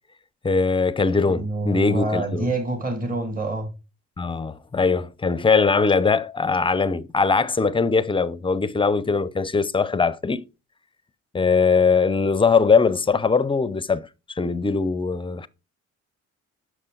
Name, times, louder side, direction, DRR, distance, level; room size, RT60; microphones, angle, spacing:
voice 1, 0.4-2.5 4.2-10.5 11.3-14.1 14.4-15.5, left 4 dB, 15° left, 0.5 m, -21 dB
voice 2, 1.3-3.7, right 2 dB, 30° right, 2.3 m, -26 dB
6.4 x 5.4 x 3.8 m
cardioid pair, 90°, 30 cm